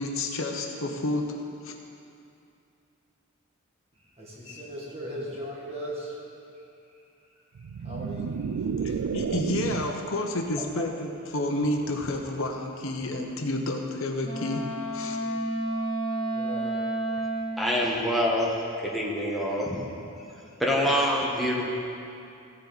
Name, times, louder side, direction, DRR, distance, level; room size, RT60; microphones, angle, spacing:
voice 1, 0.0-1.7 4.5-4.6 8.6-14.7 14.9-15.2, left 1 dB, 65° left, 3 dB, 0.9 m, -30 dB
voice 2, 4.2-6.2 7.8-9.2 16.0-16.8 20.4-20.5, equal, 25° right, -4 dB, 1.7 m, -39 dB
sound 1, 7.6-10.1, right 6 dB, 80° right, 0.4 m, -31 dB
Wind instrument woodwind instrument, 14.2-17.7, right 1 dB, 20° left, 1.0 m, -30 dB
voice 3, 17.6-18.5 18.8-19.7 20.6-21.7, equal, ahead, -4 dB, 1.3 m, -25 dB
15.0 x 7.3 x 4.1 m, 2.6 s
head